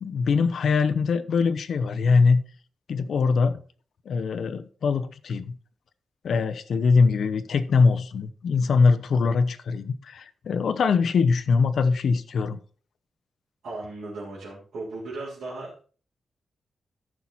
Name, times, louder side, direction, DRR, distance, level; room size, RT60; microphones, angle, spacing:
voice 1, 0.0-2.4 2.9-3.6 4.1-5.6 6.2-12.6, left 4 dB, 65° left, 0.8 m, -22 dB
voice 2, 13.6-15.8, right 2 dB, 90° right, 3.8 m, -36 dB
14.0 x 6.0 x 4.2 m
wide cardioid pair, 170°, 0 cm